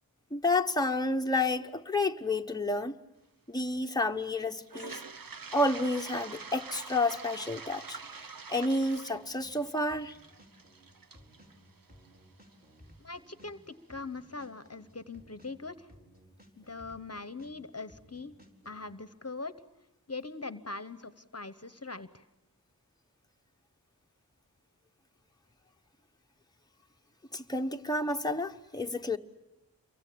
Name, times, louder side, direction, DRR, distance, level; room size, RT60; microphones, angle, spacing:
voice 1, 0.3-3.0 3.5-5.0 5.5-10.2 27.3-29.2, left 2 dB, 10° left, 1.0 m, -30 dB
Toilet flush, 4.6-12.5, right 5 dB, 65° right, 0.9 m, -46 dB
sound 1, 9.0-9.6 9.9-13.6 13.9-17.6 17.9-18.9, equal, 25° right, 4.4 m, -58 dB
voice 2, 13.0-15.9 16.6-18.3 18.6-19.5 20.1-22.2, left 3 dB, 40° left, 1.0 m, -41 dB
28.5 x 23.5 x 8.6 m
wide cardioid pair, 45°, 36 cm